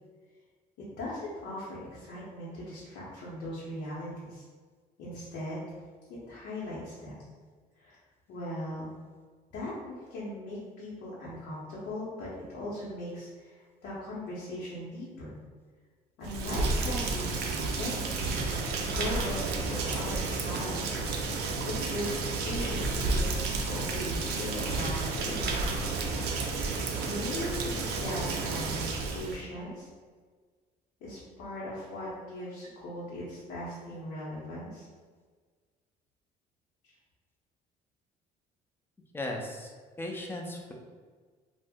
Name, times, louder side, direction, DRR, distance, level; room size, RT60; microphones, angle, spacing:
voice 1, 1.0-4.4 5.0-5.6 6.1-7.3 7.8-8.0 8.3-8.9 9.5-12.3 12.5-15.4 16.2-18.2 18.9-21.0 21.6-25.4 27.0-29.9 31.0-34.9, left 1 dB, 85° left, -8 dB, 0.8 m, -39 dB
Rain, 16.2-29.4, right 3 dB, 75° right, 0.4 m, -31 dB
voice 2, 39.1-40.7, left 1 dB, 15° left, 0 dB, 0.4 m, -37 dB
2.5 x 2.0 x 3.5 m, 1.5 s
cardioid pair, 110°, 17 cm